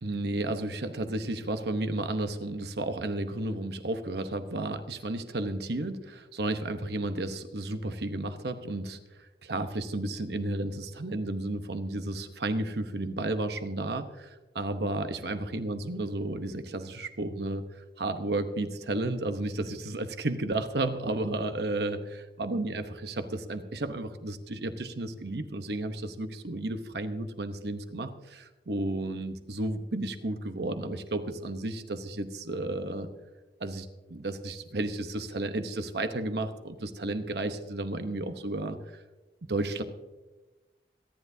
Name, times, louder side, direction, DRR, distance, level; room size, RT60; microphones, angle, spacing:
voice 1, 0.0-17.6 18.0-33.1 33.6-39.0 39.5-39.8, right 2 dB, 70° right, 8 dB, 0.9 m, -33 dB
26.5 x 10.5 x 2.7 m, 1.1 s
head